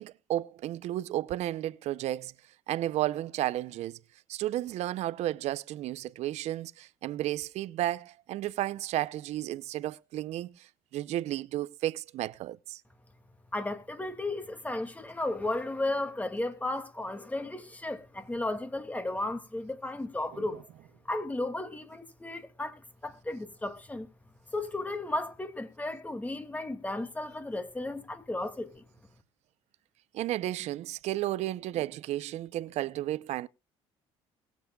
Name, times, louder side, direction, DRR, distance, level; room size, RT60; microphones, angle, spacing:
voice 1, 0.0-2.3 2.7-4.0 4.3-10.7 10.9-12.8 30.1-33.5, right 14 dB, 70° right, 0.6 m, -33 dB
voice 2, 13.5-20.6 21.1-24.1 24.5-28.8, left 2 dB, 15° left, 2.2 m, -34 dB
21.5 x 8.3 x 2.3 m
supercardioid pair, 85°, 12 cm